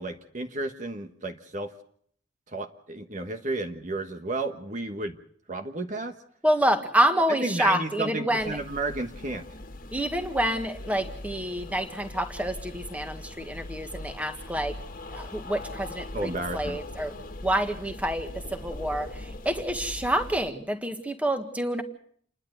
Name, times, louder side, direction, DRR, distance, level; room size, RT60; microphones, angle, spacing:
voice 1, 0.0-1.7 2.5-5.2 5.5-6.2 7.4-9.5 16.1-16.8, right 2 dB, 45° right, 6 dB, 1.3 m, -32 dB
voice 2, 6.4-8.6 9.9-14.8 15.1-17.1 17.4-21.8, right 1 dB, 10° right, 6 dB, 1.8 m, -28 dB
sound 1, 8.4-20.5, left 1 dB, 45° left, 1.8 m, -41 dB
28.5 x 11.5 x 8.0 m, 0.63 s
head